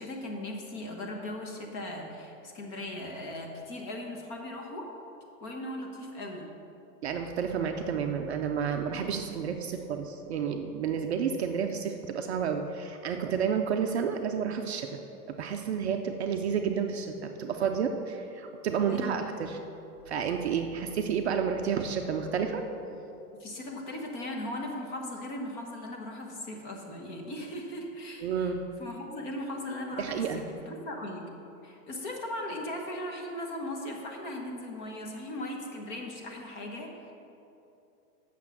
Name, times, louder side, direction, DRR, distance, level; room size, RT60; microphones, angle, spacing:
voice 1, 0.0-4.9 5.4-6.5 18.9-19.4 23.4-28.5 28.8-31.2 31.6-37.1, left 1 dB, 30° left, 1 dB, 1.3 m, -38 dB
voice 2, 7.0-15.0 15.3-19.6 20.1-22.6 28.2-28.6 30.0-30.5, right 7 dB, 45° right, 4 dB, 0.5 m, -30 dB
8.3 x 6.7 x 7.2 m, 2.8 s
supercardioid pair, 165°, 48 cm